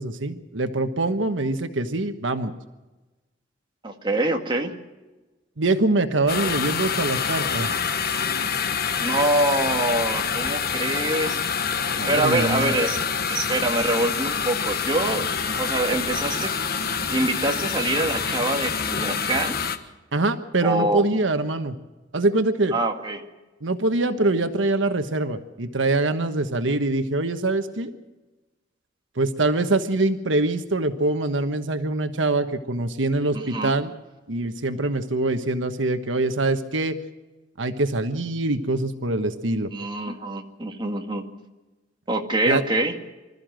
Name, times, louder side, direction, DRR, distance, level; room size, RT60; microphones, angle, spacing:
voice 1, 0.0-2.5 5.6-7.7 8.0-8.2 12.0-12.7 20.1-21.7 22.1-22.7 23.6-27.9 29.2-33.9 34.3-37.0 37.6-39.7 42.5-42.6, right 2 dB, 90° right, 8 dB, 1.3 m, -24 dB
voice 2, 3.8-4.7 9.0-11.4 12.1-13.0 13.3-15.3 15.6-16.5 17.1-19.6 20.6-21.1 22.7-23.2 33.3-33.8 39.7-41.3 42.1-42.9, right 2 dB, 25° right, 3 dB, 2.1 m, -25 dB
sound 1, 6.3-19.8, left 6 dB, 55° left, 1.4 m, -26 dB
26.0 x 13.5 x 7.7 m, 1.2 s
head